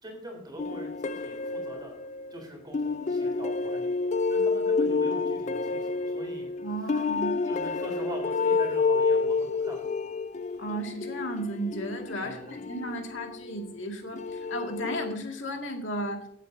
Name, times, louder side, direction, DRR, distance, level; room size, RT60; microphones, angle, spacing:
voice 1, 0.0-1.9 2.3-4.0 4.3-6.5 7.4-9.9 12.2-12.6, equal, 20° right, 1 dB, 3.6 m, -43 dB
sound 1, 0.6-2.3 2.7-13.6 14.1-15.1, left 4 dB, 35° left, 0.4 m, -29 dB
voice 2, 6.6-7.4 10.6-16.2, right 1 dB, 65° left, 2 dB, 2.1 m, -34 dB
17.5 x 8.5 x 2.7 m, 0.72 s
head